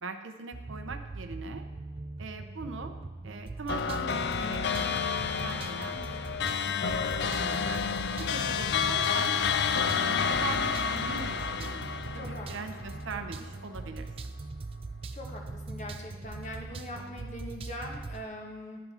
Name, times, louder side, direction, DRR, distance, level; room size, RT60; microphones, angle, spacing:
voice 1, 0.0-1.7 2.2-2.9 3.2-7.8 8.2-9.4 10.0-11.9 12.1-14.3, right 4 dB, 70° right, 7 dB, 0.7 m, -41 dB
sound 1, 0.5-18.3, right 3 dB, 30° right, 0.3 m, -41 dB
sound 2, 3.7-13.3, left 6 dB, 55° left, 0.4 m, -30 dB
voice 2, 12.1-12.5 15.1-18.8, left 1 dB, 35° left, 1 dB, 1.4 m, -42 dB
11.0 x 8.1 x 4.3 m, 1.2 s
head